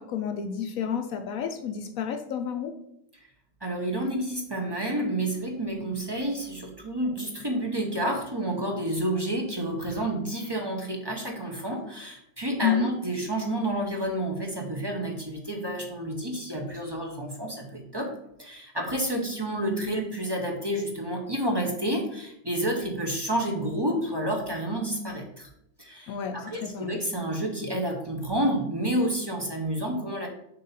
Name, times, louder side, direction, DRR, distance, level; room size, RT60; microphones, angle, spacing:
voice 1, 0.0-2.7 12.6-12.9 26.1-27.0, left 7 dB, 70° left, 6 dB, 0.9 m, -30 dB
voice 2, 3.6-18.1 18.4-25.5 25.8-30.3, right 1 dB, 25° right, 0 dB, 0.5 m, -30 dB
6.7 x 2.8 x 5.6 m, 0.79 s
omnidirectional pair, 1.7 m